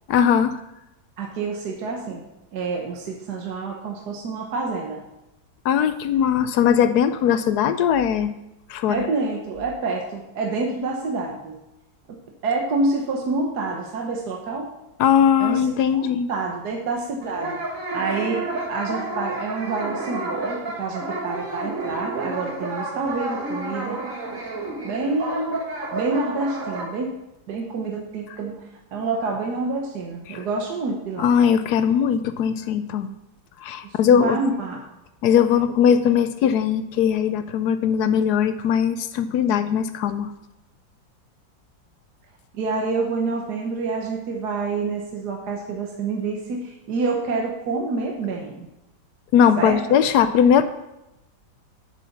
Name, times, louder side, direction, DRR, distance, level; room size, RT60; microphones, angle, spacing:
voice 1, 0.1-0.6 5.6-8.3 8.7-9.0 15.0-16.3 30.3-30.4 31.2-33.1 33.6-34.4 35.2-40.3 49.3-50.6, left 8 dB, 70° left, 11 dB, 1.0 m, -19 dB
voice 2, 1.2-2.2 2.5-5.0 8.9-11.6 12.4-14.7 15.4-17.6 17.9-24.0 24.8-25.6 25.9-27.1 27.5-31.3 34.1-34.8 42.5-48.7 49.6-50.0, right 3 dB, 60° right, 0 dB, 1.6 m, -27 dB
sound 1, 17.2-26.8, right 2 dB, 45° right, 2.0 m, -30 dB
8.3 x 6.9 x 5.8 m, 0.92 s
omnidirectional pair, 2.0 m